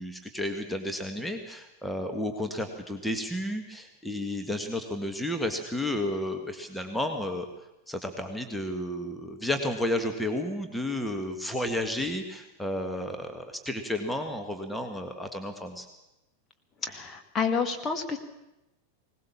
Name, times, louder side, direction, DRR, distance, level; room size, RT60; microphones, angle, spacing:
voice 1, 0.0-7.5 7.9-15.9, left 1 dB, 5° left, 5 dB, 1.8 m, -32 dB
voice 2, 16.8-18.2, left 5 dB, 25° left, 5 dB, 2.1 m, -29 dB
21.0 x 19.0 x 7.2 m, 0.95 s
figure-of-eight pair, 90°, 0 cm